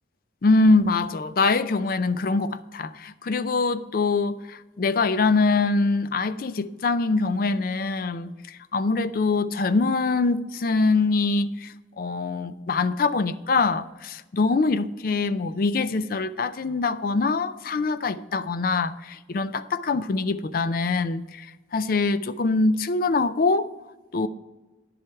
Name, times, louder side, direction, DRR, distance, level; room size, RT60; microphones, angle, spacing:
voice 1, 0.4-21.5 21.7-23.7 24.1-24.3, left 3 dB, 50° left, 14 dB, 0.4 m, -24 dB
10.0 x 7.6 x 4.6 m, 1.2 s
head